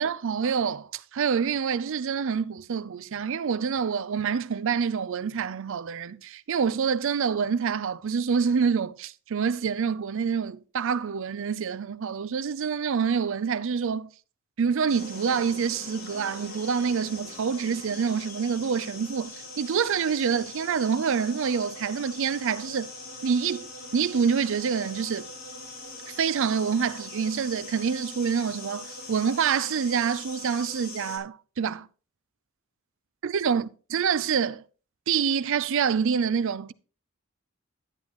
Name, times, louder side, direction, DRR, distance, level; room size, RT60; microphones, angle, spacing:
voice 1, 0.0-14.1 14.6-22.9 23.2-23.7 23.9-25.3 26.2-31.9 33.2-34.6 35.1-36.7, right 6 dB, 65° right, 0.5 m, -27 dB
sound 1, 14.9-31.2, left 2 dB, 45° left, 3.4 m, -42 dB
11.5 x 8.9 x 3.0 m
head